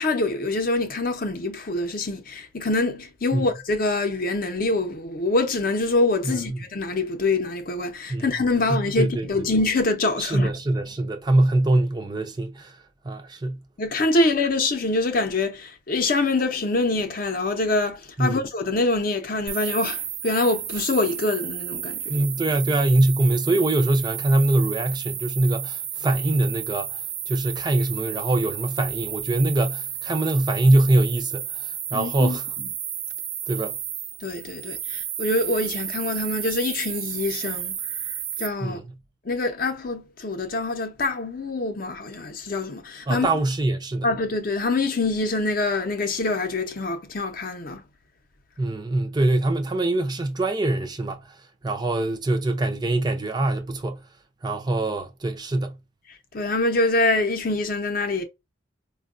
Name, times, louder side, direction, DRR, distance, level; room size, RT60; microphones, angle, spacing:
voice 1, 0.0-10.5 13.8-22.2 31.9-32.4 34.2-37.8 38.4-38.8 39.2-43.3 44.0-47.8 56.3-58.2, left 2 dB, 45° left, 0.6 m, -25 dB
voice 2, 6.2-6.6 8.1-8.3 8.7-9.3 10.2-13.6 18.2-18.4 22.1-27.0 27.3-32.4 33.5-33.8 38.6-38.8 43.1-44.1 48.6-51.4 51.6-54.0 54.4-55.7, right 2 dB, 20° right, 0.4 m, -23 dB
sound 1, 19.5-38.5, right 9 dB, 75° right, 0.9 m, -32 dB
4.4 x 2.2 x 2.4 m
head